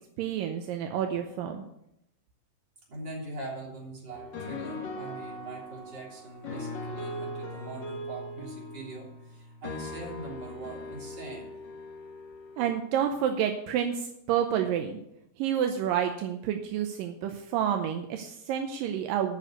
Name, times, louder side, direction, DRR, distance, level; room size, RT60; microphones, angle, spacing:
voice 1, 0.2-1.6 12.6-15.0 15.4-19.4, right 9 dB, 80° right, 5 dB, 2.3 m, -29 dB
voice 2, 2.9-11.6, right 2 dB, 30° right, -3 dB, 3.7 m, -42 dB
sound 1, 4.1-12.7, left 1 dB, 60° left, 1.2 m, -40 dB
10.0 x 6.2 x 7.9 m, 0.80 s
omnidirectional pair, 4.2 m